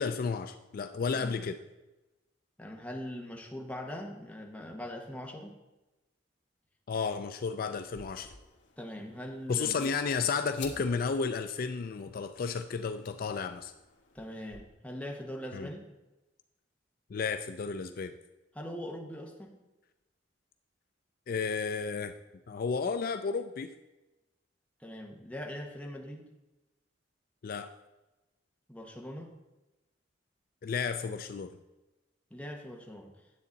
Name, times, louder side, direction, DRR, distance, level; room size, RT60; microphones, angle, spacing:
voice 1, 0.0-1.6 6.9-8.3 9.5-13.7 15.5-15.7 17.1-18.1 21.3-22.1 22.5-23.7 27.4-27.7 30.6-31.6, left 5 dB, 50° left, 9 dB, 0.4 m, -32 dB
voice 2, 2.6-5.6 8.8-9.9 14.1-15.9 18.5-19.6 24.8-26.3 28.7-29.3 32.3-33.2, equal, 5° left, 0 dB, 1.2 m, -41 dB
sound 1, 7.7-14.6, left 5 dB, 85° left, 1.3 m, -53 dB
9.9 x 8.1 x 3.9 m, 1.1 s
head